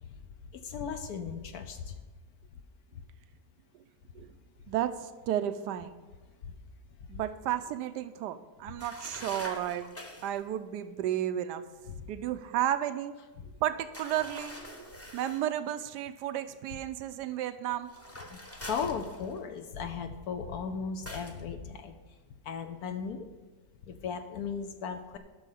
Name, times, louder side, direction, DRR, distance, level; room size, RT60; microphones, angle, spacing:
voice 1, 0.5-2.0 6.4-6.5 8.7-8.8 11.9-12.1 18.3-21.9 22.4-23.3 23.8-25.2, left 6 dB, 70° left, 6 dB, 1.1 m, -37 dB
voice 2, 4.7-6.0 7.1-10.0 10.2-11.6 12.1-13.1 13.6-17.9, right 11 dB, 90° right, 11 dB, 1.2 m, -33 dB
sound 1, 8.8-10.4 13.9-15.5 17.8-19.6 21.1-21.4, left 1 dB, 15° left, 0.6 m, -45 dB
12.0 x 6.4 x 5.6 m, 1.3 s
omnidirectional pair, 1.8 m